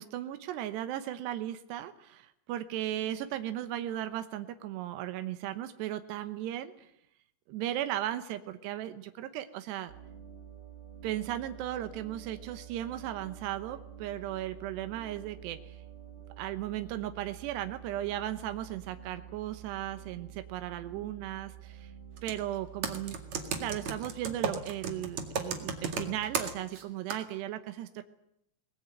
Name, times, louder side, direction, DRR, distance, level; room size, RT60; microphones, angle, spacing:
voice 1, 0.0-6.9 7.5-9.9 11.0-15.8 16.4-21.9 22.2-23.2 23.6-28.0, right 12 dB, 85° right, 9 dB, 3.2 m, -36 dB
sound 1, 9.9-26.6, right 10 dB, 70° right, 4.4 m, -49 dB
Computer keyboard, 22.2-22.4 22.8-26.8 27.1-27.2, right 5 dB, 50° right, 2.9 m, -33 dB
22.0 x 20.0 x 9.0 m, 0.76 s
omnidirectional pair, 4.7 m